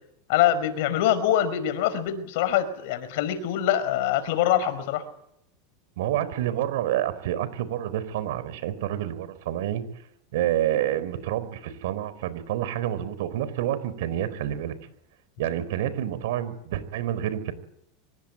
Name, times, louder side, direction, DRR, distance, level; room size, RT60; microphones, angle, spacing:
voice 1, 0.3-5.0, left 11 dB, 70° left, 12 dB, 5.2 m, -24 dB
voice 2, 6.0-9.8 10.3-14.7 15.4-17.5, right 12 dB, 80° right, 15 dB, 4.4 m, -28 dB
25.5 x 21.5 x 8.9 m, 0.77 s
supercardioid pair, 135°, 0 cm